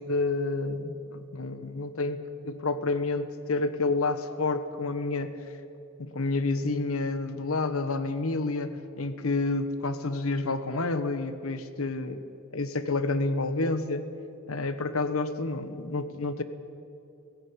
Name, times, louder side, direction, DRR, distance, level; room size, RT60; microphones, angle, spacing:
voice 1, 0.0-5.3 6.0-12.2 12.5-14.1 14.5-16.4, left 3 dB, 80° left, 11 dB, 1.2 m, -29 dB
17.0 x 15.5 x 9.7 m, 2.7 s
head